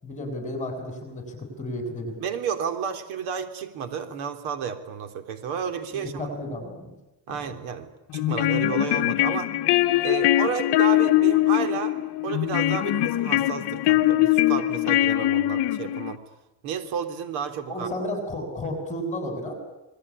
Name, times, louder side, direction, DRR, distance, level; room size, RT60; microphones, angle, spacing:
voice 1, 0.0-2.1 5.9-6.9 7.3-7.5 17.7-19.5, left 1 dB, 15° left, 5 dB, 7.7 m, -32 dB
voice 2, 2.2-6.3 7.3-9.5 10.0-12.0 12.2-16.2 16.6-17.9, right 7 dB, 75° right, 7 dB, 3.6 m, -32 dB
sound 1, 8.1-16.2, left 15 dB, 55° left, 1.1 m, -22 dB
27.5 x 20.5 x 10.0 m, 1.0 s
cardioid pair, 160°, 49 cm